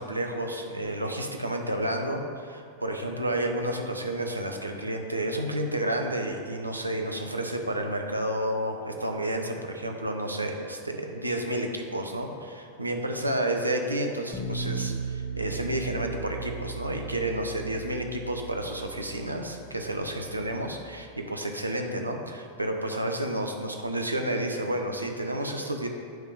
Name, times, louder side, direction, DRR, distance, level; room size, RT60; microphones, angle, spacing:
voice 1, 0.0-25.9, right 1 dB, 85° right, 3 dB, 0.7 m, -30 dB
Bass guitar, 14.3-20.6, right 3 dB, 25° left, 1.1 m, -37 dB
9.2 x 3.6 x 5.0 m, 2.2 s
figure-of-eight pair, 90°, 0 cm